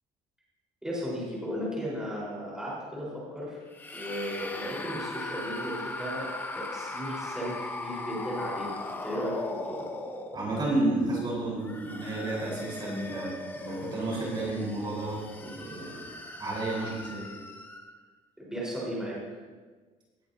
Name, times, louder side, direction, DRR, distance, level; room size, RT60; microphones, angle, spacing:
voice 1, 0.8-3.6 3.9-6.3 6.5-9.9 18.4-19.2, equal, 5° right, -7 dB, 4.3 m, -35 dB
sound 1, 3.7-10.8 11.5-18.0, left 2 dB, 15° left, 0.9 m, -39 dB
voice 2, 10.3-16.1 16.4-17.3, right 2 dB, 35° right, -4 dB, 4.2 m, -31 dB
18.0 x 10.5 x 2.8 m, 1.4 s
cardioid pair, 145°, 13 cm